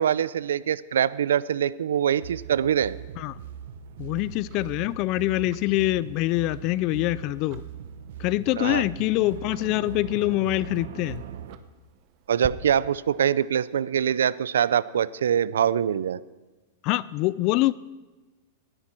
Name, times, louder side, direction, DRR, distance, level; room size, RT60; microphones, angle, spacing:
voice 1, 0.0-3.0 8.6-8.8 12.3-16.2, right 9 dB, 90° right, 0.4 m, -24 dB
sound 1, 2.2-11.6, right 9 dB, 70° right, 0.9 m, -40 dB
voice 2, 4.0-7.6 8.2-11.2 16.8-17.7, left 18 dB, 40° left, 0.3 m, -25 dB
Tick-tock, 4.2-12.5, right 17 dB, 40° right, 0.8 m, -48 dB
17.0 x 10.5 x 4.4 m
hypercardioid pair, 140°, 0 cm